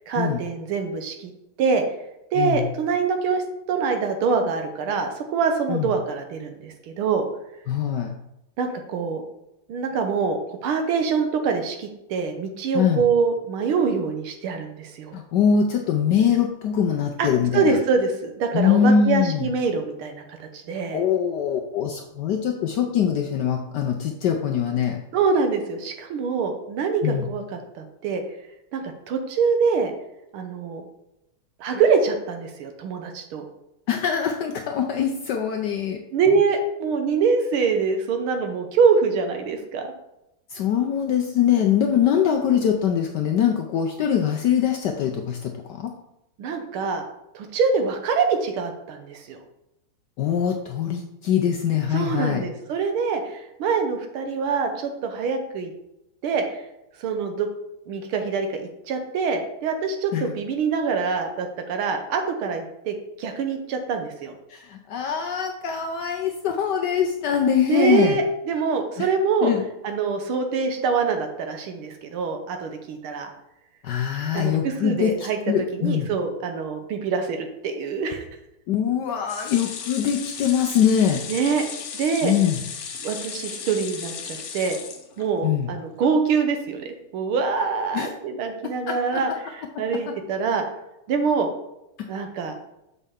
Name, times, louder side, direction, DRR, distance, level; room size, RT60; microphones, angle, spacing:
voice 1, 0.1-1.3 1.6-1.8 2.3-3.4 3.7-7.3 8.6-9.2 9.7-15.2 17.2-17.3 17.5-21.0 25.1-28.2 28.7-29.9 30.3-30.8 31.6-33.5 36.1-39.9 46.4-47.0 47.3-49.4 51.9-55.7 56.2-56.6 57.0-57.5 57.9-64.4 67.7-69.5 69.8-73.3 74.3-75.4 75.7-78.2 81.3-81.7 81.9-82.3 83.0-84.8 85.2-86.9 87.1-90.6 91.1-91.5 92.1-92.5, right 5 dB, 75° right, 5 dB, 1.8 m, -24 dB
voice 2, 2.4-2.7 5.7-5.9 7.7-8.1 12.7-13.0 15.1-17.8 18.5-19.5 20.9-25.0 27.0-27.3 33.9-36.0 40.5-45.9 50.2-52.4 60.1-60.3 64.5-68.2 69.0-69.1 69.4-69.7 73.8-76.1 78.7-81.2 82.2-82.6 85.4-85.7 87.9-88.1 88.9-89.2 89.9-90.1 92.0-92.1, left 8 dB, 70° left, 3 dB, 1.0 m, -23 dB
sound 1, 79.3-85.6 86.0-86.1 86.4-86.5, left 6 dB, 90° left, 1.9 m, -35 dB
7.1 x 5.4 x 3.6 m, 0.86 s
omnidirectional pair, 2.4 m